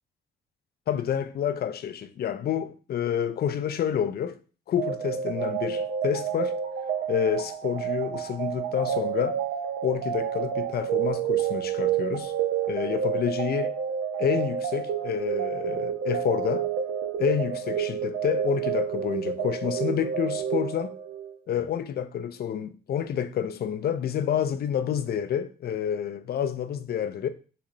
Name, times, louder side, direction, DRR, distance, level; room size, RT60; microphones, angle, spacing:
voice 1, 0.9-4.4 4.7-6.6 7.1-9.4 9.8-12.3 12.7-13.8 14.2-16.7 17.2-20.9 21.5-27.3, left 9 dB, 50° left, 0.4 m, -28 dB
sound 1, 4.8-21.4, right 8 dB, 85° right, 0.6 m, -29 dB
3.9 x 2.3 x 3.0 m
cardioid pair, 90°, 20 cm